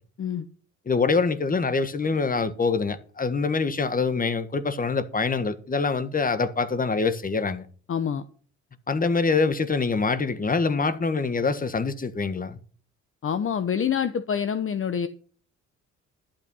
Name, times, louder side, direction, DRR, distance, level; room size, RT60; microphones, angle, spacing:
voice 1, 0.9-7.7 8.9-12.6, left 4 dB, 30° left, 1.4 m, -25 dB
voice 2, 7.9-8.2 13.2-15.1, left 7 dB, 45° left, 1.0 m, -26 dB
11.5 x 8.7 x 5.6 m
cardioid pair, 90°, 30 cm